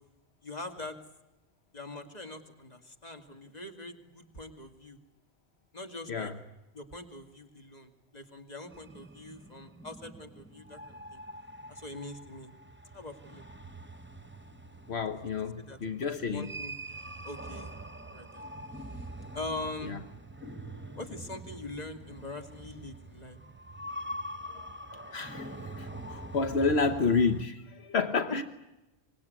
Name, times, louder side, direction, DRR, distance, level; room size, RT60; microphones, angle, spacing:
voice 1, 0.4-1.0 1.7-5.0 5.7-6.3 6.7-11.2 11.7-12.5 12.9-13.5 15.6-15.8 16.2-16.8 17.2-17.7 18.0-18.5 19.0-19.1 19.3-20.0 21.0-23.4 28.3-28.4, left 2 dB, 40° left, 6 dB, 2.7 m, -42 dB
sound 1, 8.7-27.5, right 1 dB, 10° right, 1.1 m, -44 dB
voice 2, 14.9-16.5 19.8-20.0 25.1-28.4, left 4 dB, 75° left, 9 dB, 1.5 m, -30 dB
25.0 x 21.5 x 9.5 m, 0.98 s
omnidirectional pair, 1.1 m